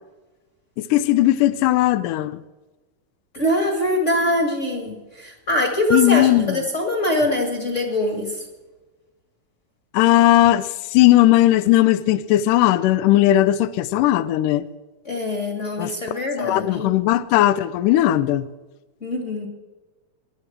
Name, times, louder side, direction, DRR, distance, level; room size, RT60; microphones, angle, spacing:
voice 1, 0.8-2.4 5.9-6.6 9.9-14.7 15.8-15.9 16.4-18.5, left 14 dB, 80° left, 1.9 m, -17 dB
voice 2, 3.3-8.4 15.0-16.9 19.0-19.5, left 1 dB, 30° left, 1.6 m, -23 dB
21.0 x 11.0 x 4.5 m
omnidirectional pair, 4.3 m